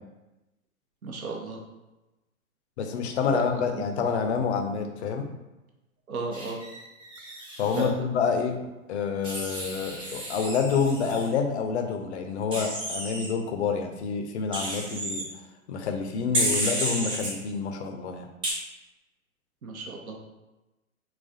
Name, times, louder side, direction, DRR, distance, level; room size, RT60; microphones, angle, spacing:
voice 1, 1.0-1.6 3.3-3.8 6.1-6.6 7.8-7.9 19.6-20.2, right 3 dB, 80° right, 0 dB, 0.8 m, -34 dB
voice 2, 2.8-5.3 7.6-8.6 8.9-15.2 15.7-18.3, left 5 dB, 50° left, 5 dB, 0.5 m, -28 dB
Wild animals, 6.3-7.9 9.2-11.3 12.5-13.3 14.5-15.2 16.3-17.3 18.4-18.5, right 1 dB, 10° right, 0.6 m, -31 dB
4.0 x 2.2 x 2.6 m, 1.0 s
figure-of-eight pair, 110°, 43 cm